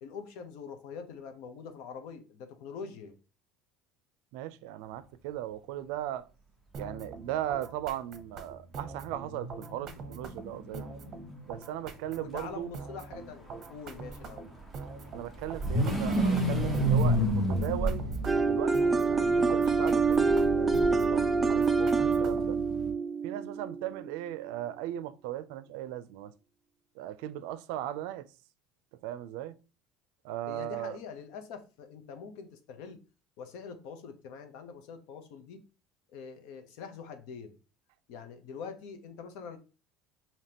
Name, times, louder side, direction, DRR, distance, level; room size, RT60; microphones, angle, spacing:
voice 1, 0.0-3.2 12.2-14.5 30.5-33.0 33.4-35.6 36.1-37.5 38.1-39.6, left 6 dB, 70° left, 0.8 m, -44 dB
voice 2, 4.3-6.3 6.8-10.8 11.5-12.7 15.1-18.0 18.4-22.6 23.2-26.3 26.9-28.3 29.0-29.5 30.2-31.0, right 12 dB, 75° right, 0.4 m, -37 dB
sound 1, 6.7-22.6, right 4 dB, 40° right, 0.8 m, -44 dB
sound 2, 6.9-7.0 7.3-7.4 9.0-11.6 13.9-22.9, right 1 dB, 10° left, 1.0 m, -31 dB
sound 3, 18.3-24.1, right 4 dB, 15° right, 0.4 m, -26 dB
5.0 x 2.9 x 2.9 m
supercardioid pair, 125°, 0 cm